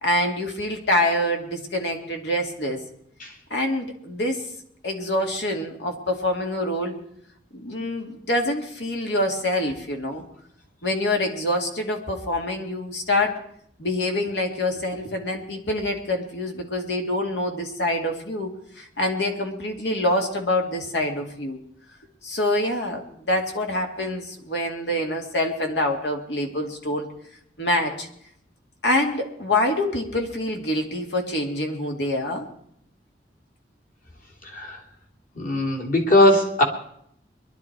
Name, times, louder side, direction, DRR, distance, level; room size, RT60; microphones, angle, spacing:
voice 1, 0.0-2.8 3.5-4.4 4.8-6.9 7.5-10.2 10.8-13.4 13.8-21.6 22.2-27.1 27.6-28.1 28.8-32.5, left 1 dB, 70° left, 2 dB, 2.3 m, -26 dB
voice 2, 34.4-34.8 35.3-36.6, left 1 dB, 50° left, 0 dB, 3.0 m, -19 dB
22.0 x 12.0 x 4.7 m, 0.72 s
head